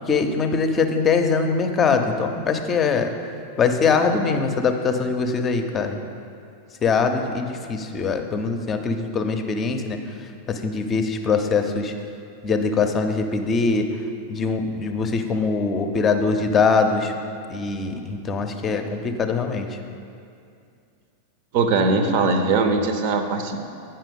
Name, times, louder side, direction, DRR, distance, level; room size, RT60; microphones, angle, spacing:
voice 1, 0.1-3.1 3.6-6.0 6.8-11.9 12.4-13.9 14.3-17.1 17.5-19.8, left 4 dB, 25° left, 6 dB, 0.7 m, -22 dB
voice 2, 21.5-23.6, right 3 dB, 45° right, 7 dB, 0.7 m, -20 dB
9.0 x 5.7 x 5.2 m, 2.4 s
figure-of-eight pair, 90°, 0 cm